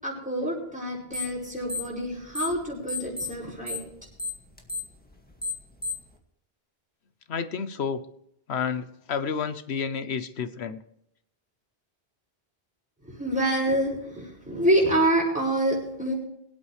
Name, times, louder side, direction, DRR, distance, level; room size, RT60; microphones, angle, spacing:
voice 1, 0.0-3.8 13.1-16.1, right 1 dB, 5° right, -3 dB, 5.9 m, -26 dB
sound 1, 1.1-1.4 1.6-2.6 2.9-6.1, left 3 dB, 10° left, 1.9 m, -32 dB
voice 2, 7.3-8.0 8.5-10.8, left 6 dB, 90° left, 11 dB, 1.2 m, -30 dB
24.5 x 8.6 x 3.3 m, 0.76 s
omnidirectional pair, 1.1 m